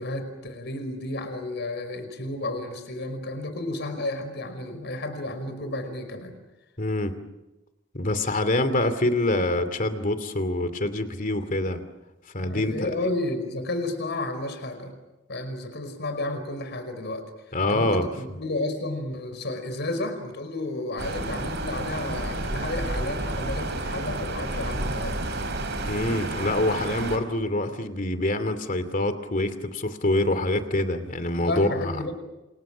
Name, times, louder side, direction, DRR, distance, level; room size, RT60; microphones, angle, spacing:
voice 1, 0.0-6.4 12.4-14.9 15.3-25.2 31.4-32.1, left 2 dB, 60° left, 8 dB, 5.1 m, -32 dB
voice 2, 6.8-7.1 7.9-11.8 12.3-12.9 17.5-18.1 25.9-32.1, left 1 dB, 45° left, 10 dB, 2.6 m, -25 dB
sound 1, 21.0-27.2, right 2 dB, 60° right, 4.6 m, -30 dB
29.5 x 27.0 x 6.3 m, 1.0 s
head